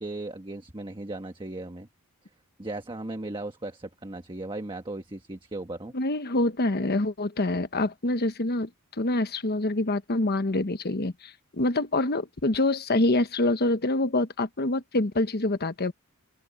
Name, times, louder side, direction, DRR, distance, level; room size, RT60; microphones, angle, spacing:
voice 1, 0.0-1.9 2.6-5.9, right 2 dB, 20° right, 1.4 m, -36 dB
voice 2, 5.9-8.7 9.0-15.9, left 2 dB, 45° left, 1.1 m, -26 dB
open air
head